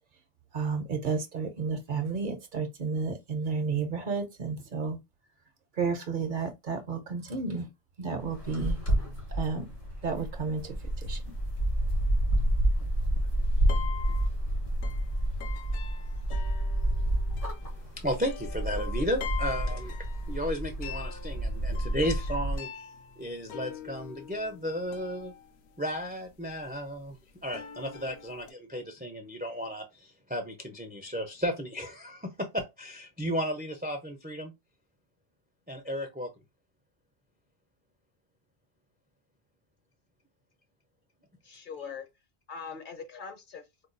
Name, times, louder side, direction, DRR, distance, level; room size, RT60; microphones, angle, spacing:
voice 1, 0.5-5.0 5.8-7.7 8.0-8.8 9.3-9.7 10.0-11.2, right 5 dB, 55° right, 0.7 m, -32 dB
sound 1, 8.2-22.6, right 1 dB, 70° left, 1.7 m, -29 dB
sound 2, 11.1-28.5, left 8 dB, 90° left, 0.9 m, -45 dB
voice 2, 17.6-20.0 20.3-22.8 23.2-25.3 25.8-27.2 27.4-34.5 35.7-36.3, equal, 15° right, 0.4 m, -34 dB
voice 3, 41.4-42.1 42.5-43.9, left 6 dB, 55° left, 0.9 m, -42 dB
4.5 x 2.3 x 2.5 m
omnidirectional pair, 1.1 m